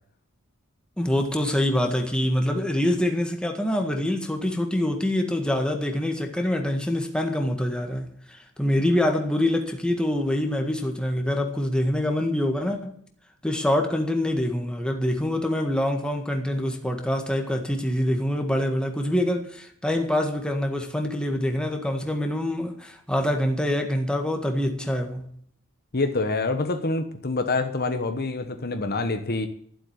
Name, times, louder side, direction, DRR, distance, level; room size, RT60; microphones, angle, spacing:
voice 1, 1.0-13.0 13.4-25.3, left 1 dB, 5° left, 1.7 m, -25 dB
voice 2, 25.9-29.5, left 3 dB, 45° left, 1.1 m, -26 dB
12.5 x 7.9 x 9.6 m
head